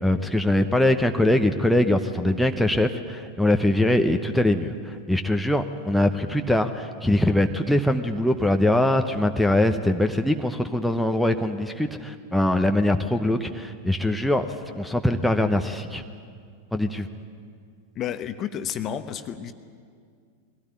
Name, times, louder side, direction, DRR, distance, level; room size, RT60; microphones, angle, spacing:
voice 1, 0.0-14.5 14.8-16.0 16.7-17.1, left 1 dB, ahead, 5 dB, 1.0 m, -22 dB
voice 2, 17.9-19.5, left 9 dB, 30° left, 10 dB, 1.1 m, -31 dB
22.5 x 17.0 x 9.7 m, 2.1 s
figure-of-eight pair, 90°, 0 cm